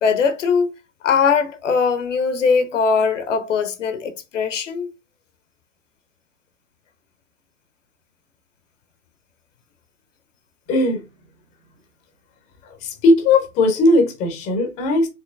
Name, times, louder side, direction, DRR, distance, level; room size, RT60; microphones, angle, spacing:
voice 1, 0.0-0.7 1.0-4.9, left 5 dB, 55° left, 0.8 m, -20 dB
voice 2, 10.7-11.0 12.6-15.1, left 2 dB, 15° left, 0.6 m, -18 dB
4.9 x 3.0 x 2.4 m
figure-of-eight pair, 110°, 44 cm